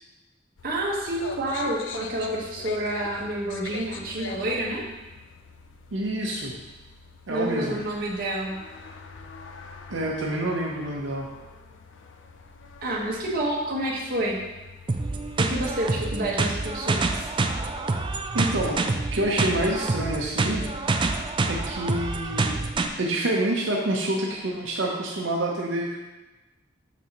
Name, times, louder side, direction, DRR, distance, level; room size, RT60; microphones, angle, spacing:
sound 1, 0.6-16.8, left 4 dB, 75° left, 0.5 m, -44 dB
voice 1, 0.6-4.8 7.3-8.6 12.8-14.4 15.4-17.3, right 1 dB, 55° right, -3 dB, 1.3 m, -28 dB
voice 2, 5.9-6.5 7.3-7.8 9.9-11.3 18.3-18.8 19.1-20.6 21.5-22.6 23.0-26.0, right 1 dB, 90° right, -1 dB, 0.8 m, -27 dB
sound 2, 14.9-22.9, right 3 dB, 25° right, 0.4 m, -27 dB
7.0 x 6.0 x 3.0 m, 1.1 s
head